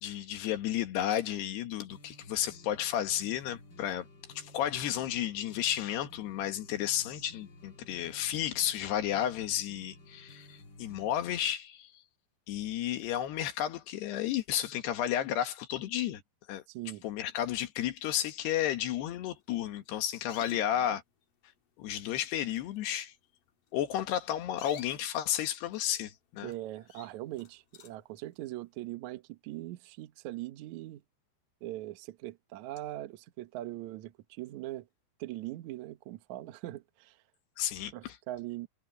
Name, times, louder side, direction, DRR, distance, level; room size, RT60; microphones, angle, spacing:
voice 1, 0.0-4.1 4.4-12.0 12.5-16.2 16.5-16.6 17.0-21.0 21.8-23.1 23.7-26.5 37.6-38.2, left 11 dB, 80° left, 3.7 m, -32 dB
sound 1, 1.9-11.5, left 1 dB, 35° left, 2.2 m, -54 dB
voice 2, 16.7-17.0 20.5-20.6 26.4-31.0 31.6-34.9 35.2-37.2 37.9-38.7, right 15 dB, 70° right, 1.8 m, -41 dB
sound 2, 19.8-20.9 21.6-21.7 21.9-22.3 22.5-22.8 23.7-23.9 24.4-26.1 26.5-26.6 26.9-28.1, left 8 dB, 60° left, 3.3 m, -51 dB
omnidirectional pair, 4.7 m